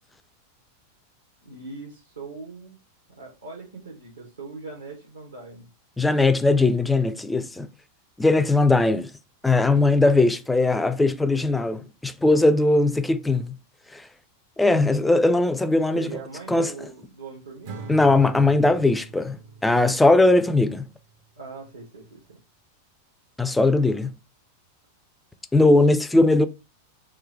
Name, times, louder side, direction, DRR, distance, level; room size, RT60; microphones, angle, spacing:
voice 1, 1.4-2.8 3.2-5.7 15.9-18.2 21.4-22.4, right 4 dB, 70° right, 1.2 m, -41 dB
voice 2, 6.0-7.7 8.2-9.1 9.4-13.6 13.9-14.1 14.6-16.1 16.5-16.7 17.9-20.9 23.4-24.2 25.5-26.5, left 2 dB, 5° left, 0.4 m, -19 dB
Acoustic guitar / Strum, 17.6-21.0, right 5 dB, 55° right, 0.7 m, -42 dB
3.7 x 2.7 x 3.5 m
figure-of-eight pair, 90°, 0 cm